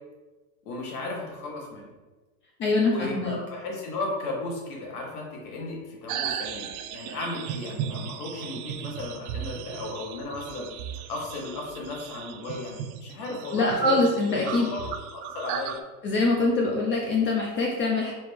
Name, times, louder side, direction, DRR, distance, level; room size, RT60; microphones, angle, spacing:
voice 1, 0.6-1.9 2.6-10.7 11.1-14.0 14.3-15.8, left 2 dB, 80° left, -2 dB, 1.3 m, -35 dB
voice 2, 2.6-3.4 13.5-14.7 16.0-18.1, left 2 dB, 25° left, -1 dB, 0.4 m, -24 dB
sound 1, 6.1-15.8, right 8 dB, 70° right, 0.5 m, -36 dB
3.2 x 3.0 x 3.4 m, 1.2 s
supercardioid pair, 120°, 45 cm